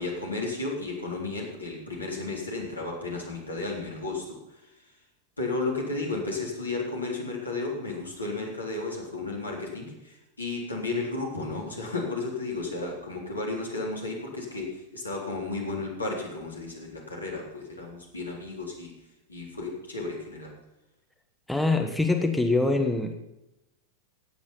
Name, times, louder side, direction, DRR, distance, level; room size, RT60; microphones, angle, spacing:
voice 1, 0.0-4.7 5.4-18.9 19.3-20.5, left 3 dB, 80° left, -1 dB, 3.9 m, -33 dB
voice 2, 21.5-23.1, left 2 dB, 5° left, 4 dB, 1.3 m, -24 dB
16.0 x 9.4 x 5.5 m, 0.93 s
figure-of-eight pair, 90°, 0 cm